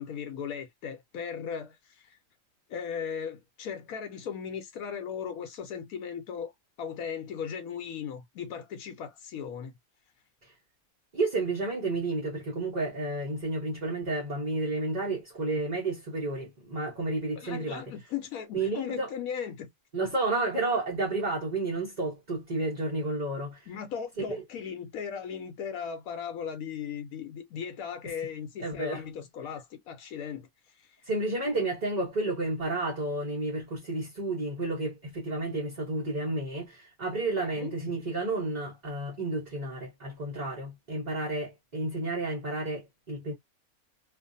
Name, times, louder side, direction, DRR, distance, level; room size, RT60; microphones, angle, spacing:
voice 1, 0.0-2.2 2.7-6.5 6.8-9.7 17.4-19.7 23.7-30.5 30.8-31.0 37.5-37.7, left 7 dB, 80° left, 1.0 m, -37 dB
voice 2, 11.1-17.8 18.5-19.1 19.9-23.7 24.3-24.4 28.0-28.1 28.6-29.0 31.0-43.3, right 2 dB, 35° right, 0.9 m, -31 dB
2.5 x 2.5 x 2.5 m
omnidirectional pair, 1.5 m